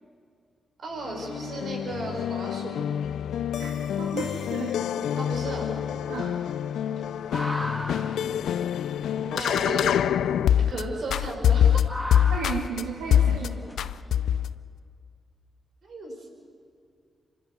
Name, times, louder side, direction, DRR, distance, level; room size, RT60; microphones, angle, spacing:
voice 1, 0.8-2.8 5.2-5.7 7.3-7.7 9.2-9.9 10.6-11.8 13.3-13.6 15.8-16.3, right 2 dB, 65° right, 1 dB, 5.3 m, -35 dB
sound 1, 1.0-10.8 11.1-12.8 13.1-13.5 13.8-14.5, left 9 dB, 75° left, 0.5 m, -25 dB
voice 2, 4.0-5.1 6.1-6.6 12.3-13.7, right 5 dB, 90° right, -1 dB, 1.6 m, -34 dB
sound 2, 7.0-13.8, equal, ahead, 2.5 m, -39 dB
25.5 x 12.0 x 9.3 m, 2.3 s
supercardioid pair, 45°, 0 cm